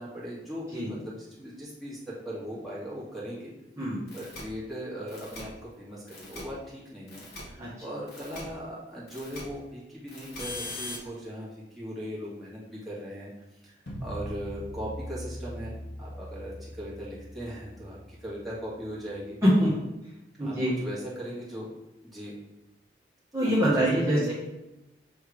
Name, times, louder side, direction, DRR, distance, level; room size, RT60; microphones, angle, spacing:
voice 1, 0.0-3.5 4.1-13.3 13.6-13.7 14.0-19.4 20.4-21.7 22.0-22.3 23.7-24.3, equal, ahead, -7 dB, 1.8 m, -39 dB
sound 1, 4.1-4.4 5.1-5.4 6.1-6.4 7.1-7.4 8.1-8.4 9.1-9.4 10.1-11.0, left 2 dB, 60° left, 1.9 m, -40 dB
sound 2, 13.9-18.9, equal, 85° left, 1.6 m, -41 dB
voice 2, 19.4-19.7 20.4-20.7 23.3-24.3, equal, 15° right, -9 dB, 1.6 m, -24 dB
6.5 x 3.5 x 4.9 m, 0.97 s
head